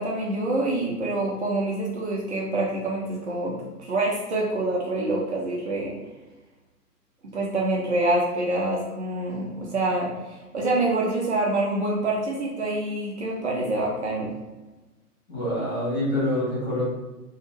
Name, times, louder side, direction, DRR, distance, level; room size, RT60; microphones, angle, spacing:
voice 1, 0.0-6.0 7.2-14.4, right 2 dB, 45° right, -2 dB, 0.7 m, -26 dB
voice 2, 15.3-16.8, left 1 dB, 15° left, -10 dB, 0.8 m, -26 dB
2.7 x 2.4 x 2.9 m, 1.1 s
figure-of-eight pair, 125°, 48 cm